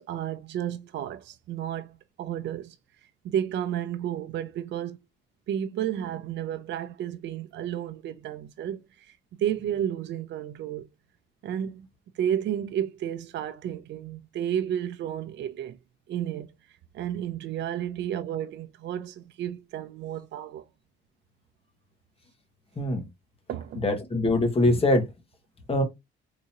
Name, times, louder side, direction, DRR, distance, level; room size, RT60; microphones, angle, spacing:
voice 1, 0.0-2.8 3.0-5.0 5.5-10.9 11.4-11.9 12.1-15.8 16.1-16.5 16.9-20.6 23.5-23.8, right 10 dB, 65° right, 0.5 m, -32 dB
voice 2, 23.7-25.1 25.7-25.8, left 2 dB, 30° left, 1.3 m, -23 dB
3.7 x 2.8 x 2.8 m
cardioid pair, 90°, 20 cm